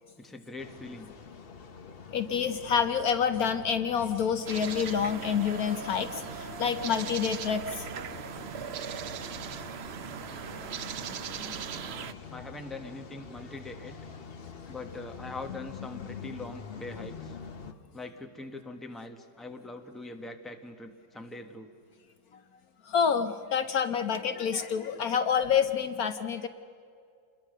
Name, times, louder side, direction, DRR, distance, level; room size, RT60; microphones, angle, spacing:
voice 1, 0.2-1.1 12.3-13.9 14.7-17.3 17.9-21.7, left 2 dB, ahead, 5 dB, 1.2 m, -42 dB
sound 1, 0.6-17.7, left 6 dB, 40° left, 1.0 m, -45 dB
voice 2, 2.1-7.9 22.9-26.5, left 7 dB, 65° left, 10 dB, 1.2 m, -28 dB
sound 2, 4.4-12.1, right 8 dB, 60° right, 0.7 m, -39 dB
sound 3, 5.0-10.3, left 2 dB, 75° right, 2.4 m, -49 dB
28.5 x 21.5 x 6.6 m, 2.3 s
omnidirectional pair, 1.8 m